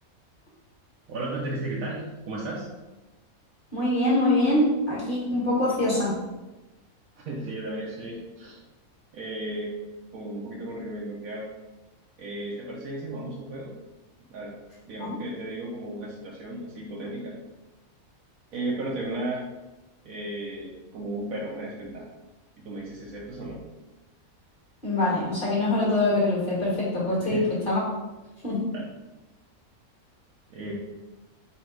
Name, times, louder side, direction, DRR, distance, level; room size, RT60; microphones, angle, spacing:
voice 1, 1.1-2.6 7.3-8.6 9.1-9.8 10.1-11.5 12.2-13.7 14.3-14.6 14.9-17.3 18.5-19.4 20.0-22.1 22.6-23.6 27.2-27.5 28.7-28.9 30.5-30.7, right 1 dB, 75° right, -4 dB, 1.2 m, -34 dB
voice 2, 3.7-6.1 15.0-15.2 24.8-27.8 28.4-28.6, left 1 dB, 35° left, -7 dB, 1.8 m, -24 dB
4.2 x 2.9 x 4.5 m, 1.1 s
omnidirectional pair, 1.5 m